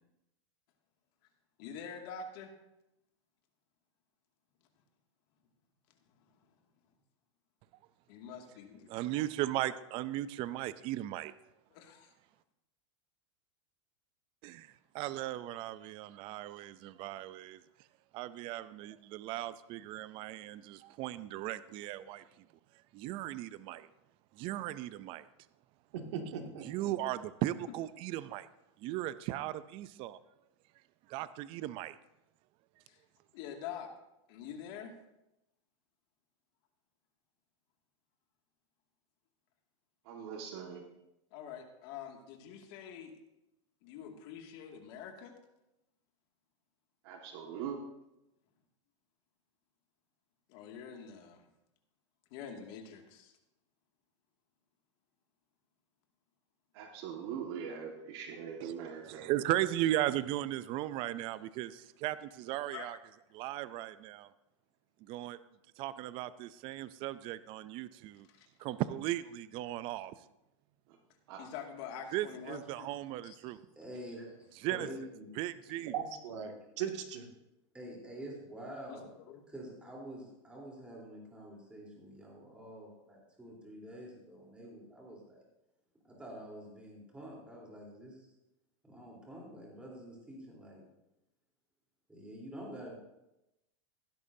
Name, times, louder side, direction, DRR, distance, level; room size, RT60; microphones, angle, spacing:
voice 1, 1.6-2.5 8.1-8.9 11.7-12.1 32.9-33.0 33.3-33.9 34.3-34.9 41.3-43.1 43.8-45.3 50.5-51.5 52.3-53.3 62.7-62.9 68.3-68.5 71.4-72.9 73.2-73.4 78.9-79.4, left 7 dB, 50° left, 2 dB, 2.2 m, -46 dB
voice 2, 8.9-11.3 14.4-17.6 18.1-22.5 22.9-23.9 24.3-25.3 26.6-28.5 28.8-30.2 31.1-32.0 58.6-58.7 59.0-63.0 63.3-64.3 65.0-65.4 65.8-68.3 68.6-70.1 72.1-73.6 74.6-74.9 75.3-75.9, right 14 dB, 35° right, 15 dB, 0.4 m, -37 dB
voice 3, 25.9-26.9 75.9-77.3, right 7 dB, 70° right, 3 dB, 2.2 m, -39 dB
voice 4, 40.1-40.8 47.0-47.8 56.7-59.3 71.3-71.5, right 7 dB, 55° right, 2 dB, 1.7 m, -42 dB
voice 5, 73.8-74.3 74.7-75.2 77.7-79.1 79.5-85.4 86.0-88.3 88.9-90.8 92.1-93.0, right 1 dB, 5° right, -3 dB, 3.6 m, -47 dB
16.0 x 12.5 x 2.7 m, 0.91 s
supercardioid pair, 150°, 16 cm